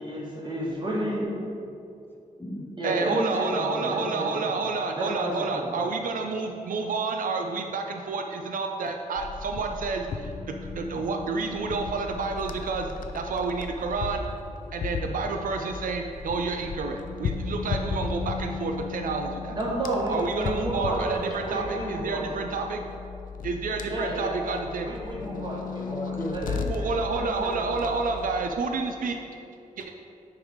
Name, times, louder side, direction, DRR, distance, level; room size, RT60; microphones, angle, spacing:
voice 1, 0.0-1.3 2.8-4.5 4.9-5.8 19.5-21.0 21.3-22.3 23.9-24.4 24.8-28.0, right 1 dB, 35° right, -4 dB, 1.5 m, -31 dB
voice 2, 2.1-3.6 24.7-26.9 29.1-30.0, equal, 15° left, -1 dB, 0.7 m, -38 dB
voice 3, 2.8-10.3 10.7-14.2 14.7-19.6 20.1-22.8 23.4-24.9 26.7-29.2 29.8-30.0, right 4 dB, 80° right, 4 dB, 0.5 m, -29 dB
sound 1, 9.1-28.4, left 5 dB, 80° left, 0.5 m, -36 dB
9.4 x 3.4 x 5.0 m, 2.5 s
wide cardioid pair, 150°, 14 cm